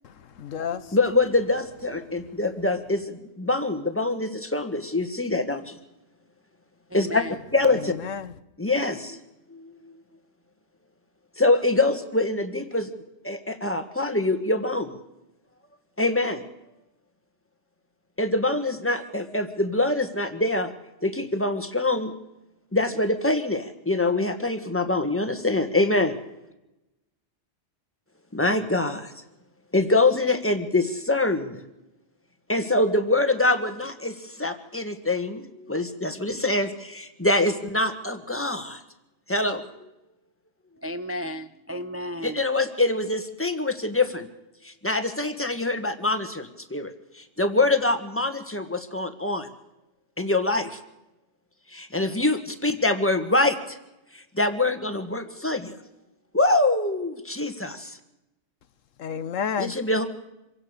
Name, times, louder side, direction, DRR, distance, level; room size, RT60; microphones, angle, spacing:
voice 1, 0.0-1.0 7.7-8.3 59.0-59.8, left 7 dB, 80° left, 1.3 m, -31 dB
voice 2, 0.9-5.8 6.9-7.2 7.5-7.9 8.6-9.2 9.5-9.9 11.4-12.9 13.2-14.9 16.0-16.4 18.2-20.7 21.0-22.1 22.7-26.2 28.3-29.1 29.7-31.6 32.5-38.8 39.3-39.9 42.2-44.3 44.6-49.5 50.2-50.8 51.7-53.8 54.1-55.8 56.3-58.0 59.6-60.1, left 2 dB, 10° left, 1.7 m, -24 dB
voice 3, 6.9-7.4 40.8-42.4, equal, 15° right, 0.5 m, -33 dB
25.5 x 17.0 x 6.7 m
omnidirectional pair, 1.3 m